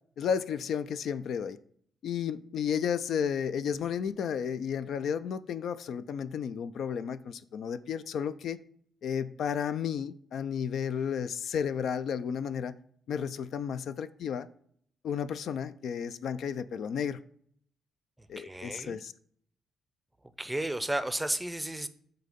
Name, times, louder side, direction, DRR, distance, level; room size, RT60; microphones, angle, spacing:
voice 1, 0.2-1.6 2.0-8.6 9.0-12.7 13.1-14.5 15.0-17.2 18.3-19.1, left 7 dB, 65° left, 0.3 m, -32 dB
voice 2, 18.4-19.0 20.4-21.9, right 1 dB, 10° right, 0.5 m, -33 dB
7.7 x 2.8 x 5.1 m
cardioid pair, 90°, 0 cm